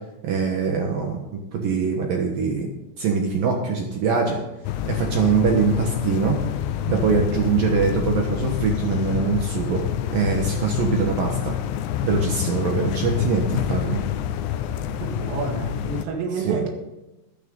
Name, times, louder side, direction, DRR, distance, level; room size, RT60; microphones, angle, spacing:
voice 1, 0.2-1.2 1.5-2.7 3.0-4.4 4.9-6.4 6.9-9.8 10.1-11.5 12.0-14.0 16.4-16.7, right 5 dB, 65° right, 1 dB, 2.4 m, -23 dB
sound 1, 4.6-16.0, left 11 dB, 85° left, 2.6 m, -27 dB
voice 2, 15.0-16.7, right 4 dB, 85° right, 1 dB, 4.6 m, -28 dB
13.5 x 12.0 x 3.8 m, 0.99 s
omnidirectional pair, 5.7 m